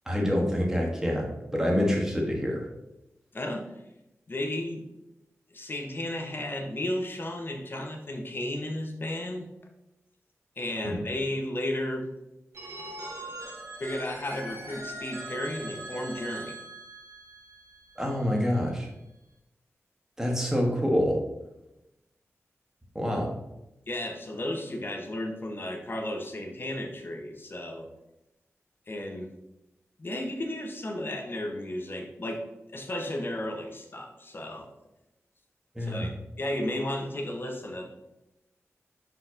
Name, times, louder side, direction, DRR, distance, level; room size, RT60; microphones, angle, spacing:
voice 1, 0.0-2.7 10.8-10.9 18.0-18.9 20.2-21.2 22.9-23.3 35.7-36.1, equal, 10° right, 0 dB, 1.7 m, -26 dB
voice 2, 3.3-3.6 4.3-4.8 5.5-9.5 10.6-12.1 13.8-16.5 23.9-27.9 28.9-29.3 30.0-32.4 32.7-34.7 35.8-36.1 36.4-37.9, left 1 dB, 45° left, 2 dB, 1.3 m, -33 dB
Telephone, 12.5-18.3, right 2 dB, 70° right, 2.1 m, -41 dB
5.7 x 4.5 x 5.8 m, 0.93 s
wide cardioid pair, 95°, 5 cm